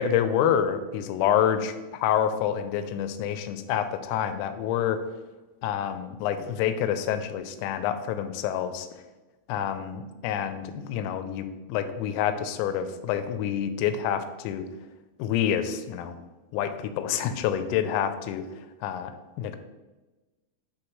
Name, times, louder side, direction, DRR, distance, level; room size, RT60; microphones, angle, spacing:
voice 1, 0.0-5.0 5.6-8.9 9.5-14.6 15.2-16.2 16.5-18.4 18.8-19.1 19.4-19.6, left 9 dB, 85° left, 10 dB, 3.2 m, -27 dB
11.5 x 3.9 x 3.1 m, 1.2 s
omnidirectional pair, 5.9 m